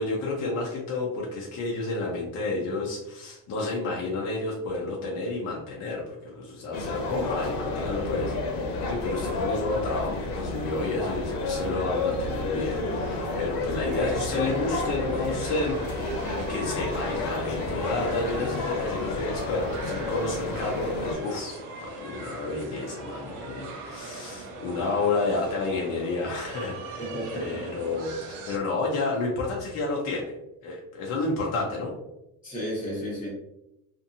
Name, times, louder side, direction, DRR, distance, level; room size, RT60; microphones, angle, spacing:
voice 1, 0.0-6.0 6.3-15.8 16.0-27.0 27.4-30.3 30.6-31.9, left 3 dB, 50° left, -3 dB, 0.6 m, -30 dB
sound 1, 6.7-21.2, left 2 dB, 85° left, 0.8 m, -31 dB
sound 2, 13.9-28.6, right 2 dB, 60° right, 0.6 m, -40 dB
voice 2, 27.0-27.6 32.4-33.3, equal, 25° left, -5 dB, 1.1 m, -33 dB
2.6 x 2.5 x 2.6 m, 0.88 s
cardioid pair, 175°, 35 cm